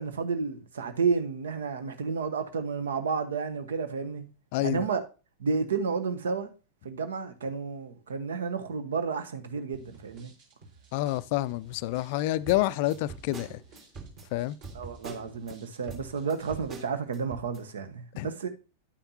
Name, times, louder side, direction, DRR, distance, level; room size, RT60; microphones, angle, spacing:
voice 1, 0.0-4.3 4.6-5.0 5.4-6.5 6.8-10.3 14.7-18.5, right 5 dB, 65° right, 1.0 m, -31 dB
voice 2, 4.5-4.9 10.9-13.6 14.3-14.6 18.2-18.3, left 16 dB, 50° left, 0.4 m, -28 dB
sound 1, 9.7-16.8, right 3 dB, 50° right, 5.2 m, -54 dB
sound 2, 12.4-15.5 15.9-17.6, right 4 dB, 30° right, 2.0 m, -44 dB
9.9 x 8.9 x 2.8 m
figure-of-eight pair, 90°, 0 cm